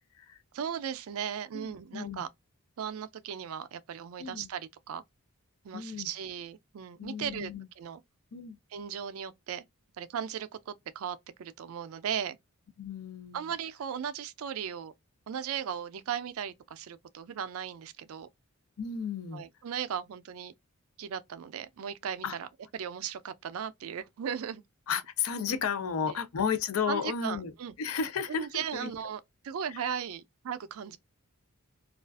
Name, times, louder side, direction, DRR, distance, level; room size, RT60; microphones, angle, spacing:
voice 1, 0.5-2.3 2.8-5.0 5.6-8.0 8.7-9.6 10.0-12.4 13.3-14.9 15.3-18.3 19.3-20.5 21.0-22.5 22.7-24.6 25.8-26.1 26.9-27.8 28.3-31.0, right 8 dB, 70° right, 0.4 m, -37 dB
voice 2, 1.5-2.2 4.2-4.5 5.7-6.1 7.0-7.7 8.3-8.6 12.8-13.4 18.8-19.4 22.2-22.4 24.9-27.5 27.8-28.9 29.7-29.8, left 6 dB, 70° left, 0.4 m, -33 dB
2.4 x 2.3 x 2.2 m
head